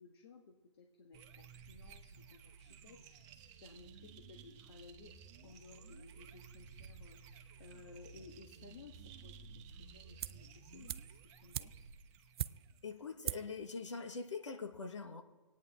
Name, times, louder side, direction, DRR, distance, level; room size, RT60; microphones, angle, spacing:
voice 1, 0.0-5.2 5.4-11.8, left 4 dB, 55° left, 2 dB, 1.4 m, -58 dB
sound 1, 1.1-13.1, right 5 dB, 30° right, 1.0 m, -55 dB
sound 2, 10.2-10.5 10.9-12.9 13.2-13.6 13.9-14.0, right 10 dB, 55° right, 0.4 m, -42 dB
voice 2, 12.8-15.2, left 4 dB, 75° left, 6 dB, 1.4 m, -43 dB
26.0 x 9.2 x 3.5 m, 1.2 s
figure-of-eight pair, 125°, 16 cm